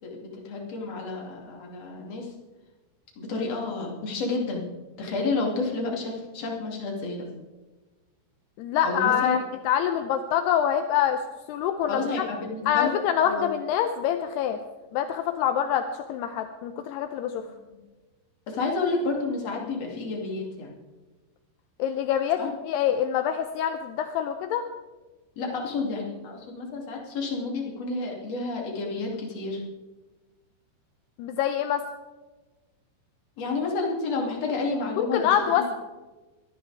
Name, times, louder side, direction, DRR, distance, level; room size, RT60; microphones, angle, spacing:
voice 1, 0.0-2.3 3.2-4.7 5.0-7.3 8.8-9.4 11.9-12.9 13.2-13.5 17.7-17.8 18.5-20.7 22.4-22.5 25.4-29.6 33.4-35.4, left 3 dB, 40° left, -1 dB, 3.2 m, -30 dB
voice 2, 8.6-11.2 11.5-12.2 12.7-14.6 14.9-17.4 21.8-24.7 31.2-31.8 35.0-35.7, left 9 dB, 80° left, 7 dB, 2.4 m, -25 dB
22.5 x 13.5 x 3.5 m, 1.2 s
omnidirectional pair, 5.3 m